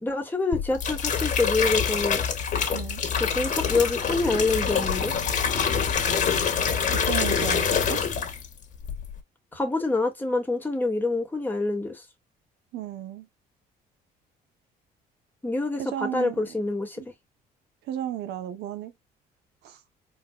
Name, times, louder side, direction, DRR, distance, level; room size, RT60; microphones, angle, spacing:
voice 1, 0.0-2.2 3.2-5.1 9.5-12.0 15.4-17.0, left 3 dB, 10° left, 2.0 m, -26 dB
sound 1, 0.5-8.5 8.8-9.2, left 7 dB, 50° left, 2.0 m, -25 dB
voice 2, 2.7-3.0 6.9-8.0 12.7-13.3 15.8-16.5 17.0-17.1 17.8-18.9 19.6-19.8, right 11 dB, 80° right, 0.9 m, -33 dB
4.4 x 3.5 x 2.3 m
cardioid pair, 110°, 17 cm